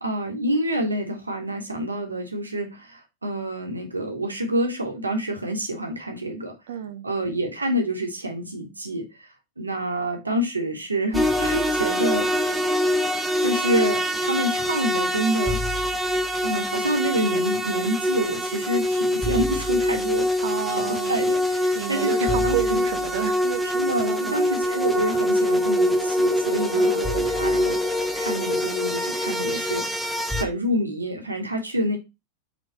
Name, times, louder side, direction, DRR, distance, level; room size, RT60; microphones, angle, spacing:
voice 1, 0.0-6.6 7.0-9.3 9.6-12.3 13.4-15.6 16.4-20.3 20.8-22.8 23.6-29.8 30.3-32.0, right 1 dB, 80° right, 1.5 m, -27 dB
voice 2, 6.7-7.0 20.4-21.1 21.7-24.4 26.7-27.0, right 10 dB, 55° right, 0.8 m, -30 dB
Shadow Maker-Dining Room, 11.1-30.4, left 1 dB, ahead, 0.8 m, -24 dB
4.6 x 4.0 x 5.3 m
figure-of-eight pair, 90°, 0 cm